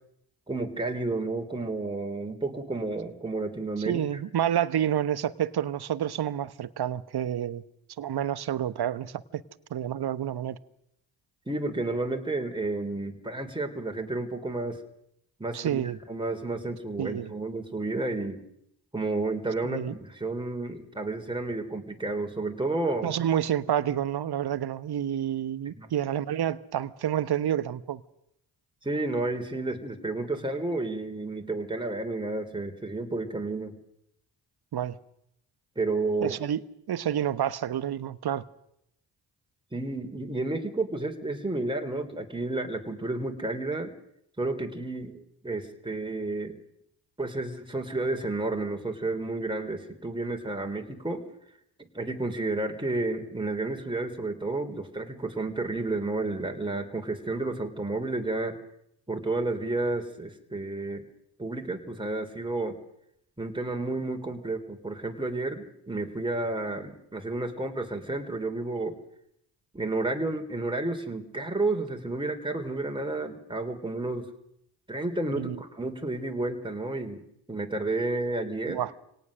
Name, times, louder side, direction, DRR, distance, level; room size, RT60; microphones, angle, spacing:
voice 1, 0.5-4.0 11.5-14.8 15.4-18.4 18.9-23.1 25.6-25.9 28.8-33.7 35.7-36.4 39.7-43.9 44.4-46.6 47.2-51.2 51.9-58.6 59.1-61.0 61.4-62.8 63.4-68.9 69.7-74.3 74.9-77.2 77.5-78.8, right 2 dB, 10° right, 3.3 m, -31 dB
voice 2, 3.8-7.6 8.0-9.4 9.7-10.6 15.5-16.0 17.0-17.3 19.6-19.9 23.0-28.0 34.7-34.9 36.2-38.4 75.4-75.6 78.7-78.9, right 10 dB, 50° right, 1.1 m, -29 dB
25.5 x 18.0 x 6.4 m
hypercardioid pair, 45°, 50 cm